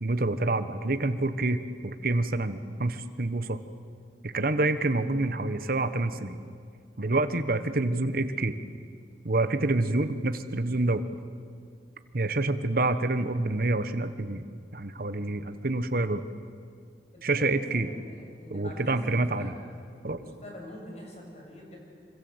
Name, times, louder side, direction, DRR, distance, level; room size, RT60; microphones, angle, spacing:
voice 1, 0.0-3.6 4.2-6.4 7.0-8.6 9.2-11.0 12.1-14.4 14.7-16.2 17.2-17.9 18.5-19.5 20.0-20.2, right 2 dB, 55° right, 10 dB, 1.2 m, -27 dB
voice 2, 17.1-19.7 20.1-21.8, left 1 dB, 40° left, 0 dB, 6.7 m, -44 dB
26.5 x 25.5 x 8.1 m, 2.2 s
head